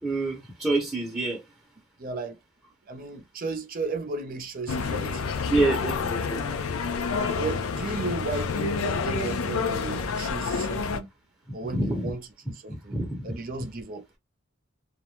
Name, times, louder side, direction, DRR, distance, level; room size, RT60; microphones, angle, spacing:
voice 1, 0.0-1.4 5.5-6.6 11.7-12.1 12.7-13.2, right 2 dB, 5° right, 0.8 m, -27 dB
voice 2, 2.0-2.4 2.9-5.2 7.3-11.1 11.5-13.0 13.2-14.0, right 3 dB, 45° right, 0.5 m, -34 dB
sound 1, 4.7-11.0, left 4 dB, 85° left, 0.5 m, -28 dB
2.4 x 2.1 x 2.9 m
head